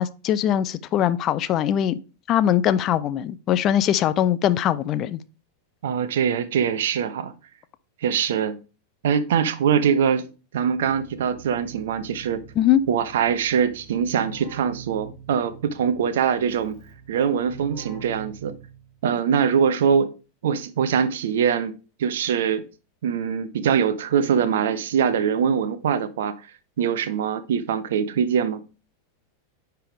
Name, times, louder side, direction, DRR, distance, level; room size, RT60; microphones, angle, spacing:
voice 1, 0.0-2.0 2.3-5.2 12.6-12.8, left 11 dB, 35° left, 0.4 m, -21 dB
voice 2, 5.8-7.3 8.0-8.6 9.0-10.3 10.5-12.4 12.9-16.8 17.1-18.6 19.0-20.1 20.4-21.7 22.0-22.6 23.0-26.3 26.8-28.6, right 7 dB, 60° right, 0.5 m, -23 dB
Keyboard (musical), 10.7-19.0, right 6 dB, 35° right, 2.9 m, -44 dB
9.8 x 3.4 x 3.5 m
figure-of-eight pair, 90°, 0 cm